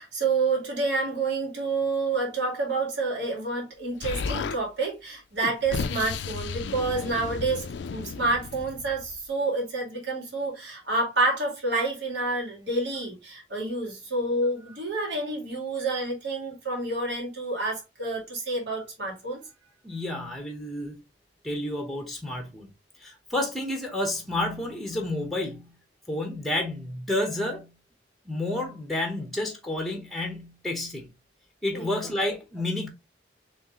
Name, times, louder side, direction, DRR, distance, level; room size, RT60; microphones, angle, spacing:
voice 1, 0.0-19.4 31.7-31.9 32.3-32.4, right 3 dB, 70° right, 2.3 m, -28 dB
Explosion, 4.0-4.6 5.4-9.2, left 5 dB, 75° left, 0.4 m, -33 dB
voice 2, 19.8-21.0 21.4-22.7 23.0-25.8 26.1-27.7 28.3-31.1 31.6-32.9, left 1 dB, ahead, 0.9 m, -30 dB
4.3 x 3.2 x 3.0 m
head